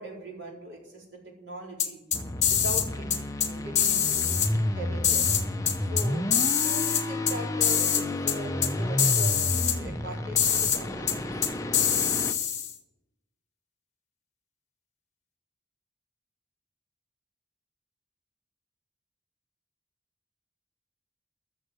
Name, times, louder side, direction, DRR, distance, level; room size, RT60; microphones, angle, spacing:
voice 1, 0.0-2.0 2.5-4.3 4.7-5.3 5.8-6.3 6.6-11.4, equal, 85° right, -1 dB, 4.3 m, -40 dB
sound 1, 1.8-2.8 3.1-3.5 3.8-4.5 5.0-6.0 6.3-7.3 7.6-8.0 8.3-8.4 8.6-8.7 9.0-9.7 10.4-10.8 11.1-11.2 11.4-12.7, left 8 dB, 40° left, 1.4 m, -24 dB
sound 2, 2.1-12.3, left 1 dB, 20° left, 0.6 m, -31 dB
14.5 x 6.5 x 8.1 m, 0.92 s
head